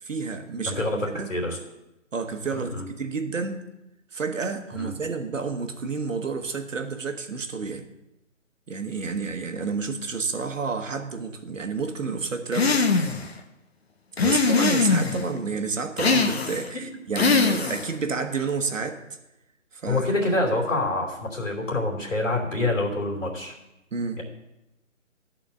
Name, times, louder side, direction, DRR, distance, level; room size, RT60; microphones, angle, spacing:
voice 1, 0.0-1.3 2.1-2.7 3.0-3.7 4.1-7.9 8.7-12.8 14.2-19.0 19.7-20.1 23.9-24.2, right 4 dB, 70° right, 7 dB, 1.2 m, -30 dB
voice 2, 0.7-1.6 2.5-2.8 4.7-4.9 14.2-14.3 16.7-16.8 19.9-23.6 24.2-24.3, left 2 dB, 70° left, 0 dB, 2.8 m, -26 dB
sound 1, 12.5-13.3 14.2-15.2 16.0-16.7 17.2-17.9, left 4 dB, 50° left, 0.9 m, -22 dB
11.5 x 4.4 x 6.5 m, 0.91 s
hypercardioid pair, 170°, 40 cm